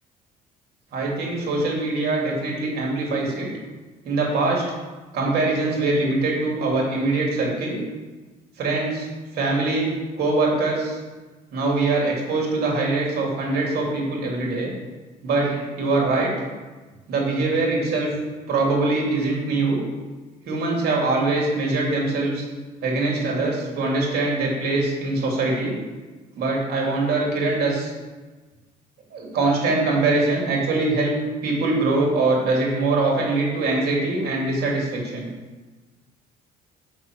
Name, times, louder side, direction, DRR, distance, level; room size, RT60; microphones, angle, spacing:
voice 1, 0.9-3.5 4.0-4.6 5.1-7.8 8.6-9.1 9.3-9.9 10.2-11.0 11.5-14.7 15.2-16.3 17.1-18.1 18.5-19.8 20.4-22.4 22.8-25.8 26.3-27.9 29.1-31.1 31.4-35.3, right 3 dB, 65° right, -2 dB, 2.9 m, -23 dB
7.4 x 5.8 x 6.2 m, 1.3 s
cardioid pair, 110°, 17 cm